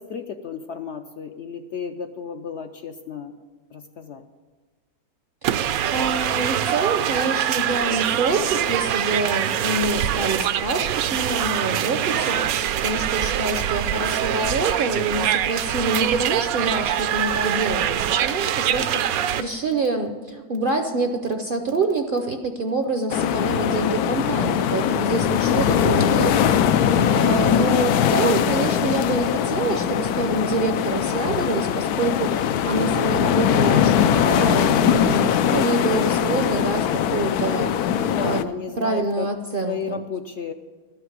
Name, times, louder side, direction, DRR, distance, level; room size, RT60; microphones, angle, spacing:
voice 1, 0.0-3.3 3.7-4.2 37.8-39.3 39.6-40.5, left 6 dB, 65° left, 6 dB, 0.7 m, -33 dB
sound 1, 5.4-19.4, right 10 dB, 75° right, 1.0 m, -24 dB
voice 2, 5.9-26.6 27.0-37.9 38.2-38.4 38.8-40.0, right 3 dB, 50° right, 5 dB, 0.6 m, -26 dB
sound 2, 23.1-38.4, left 9 dB, 80° left, 1.1 m, -21 dB
12.5 x 5.8 x 9.3 m, 1.3 s
omnidirectional pair, 1.6 m